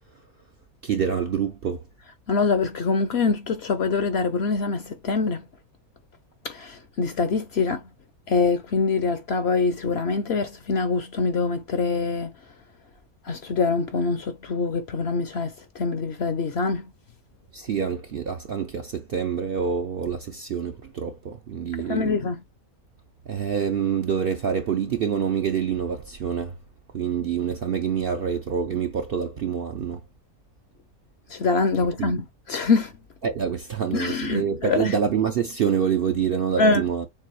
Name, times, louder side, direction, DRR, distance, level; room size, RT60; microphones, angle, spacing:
voice 1, 0.8-1.8 17.5-22.1 23.3-26.5 26.9-30.0 32.0-32.1 33.2-37.1, right 7 dB, 60° right, 0.6 m, -26 dB
voice 2, 2.3-5.4 6.4-7.8 8.3-12.3 13.3-16.8 21.8-22.4 31.3-32.9 33.9-35.0 36.6-36.8, left 4 dB, 60° left, 0.8 m, -24 dB
6.8 x 2.6 x 3.0 m
omnidirectional pair, 1.5 m